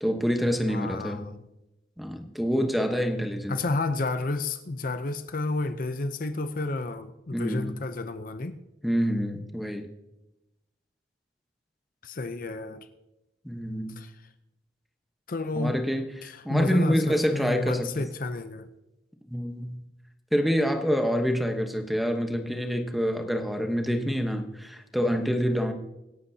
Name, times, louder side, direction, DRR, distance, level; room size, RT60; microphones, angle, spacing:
voice 1, 0.0-1.2 2.0-3.6 7.3-7.7 8.8-9.9 13.4-14.0 15.5-18.0 19.3-19.8 20.3-25.7, equal, ahead, 5 dB, 1.1 m, -27 dB
voice 2, 0.7-1.4 3.5-8.6 12.0-12.9 14.0-14.1 15.3-15.8 16.2-17.0 17.3-18.7, left 2 dB, 50° left, 10 dB, 0.6 m, -31 dB
25.0 x 11.5 x 2.8 m, 0.97 s
head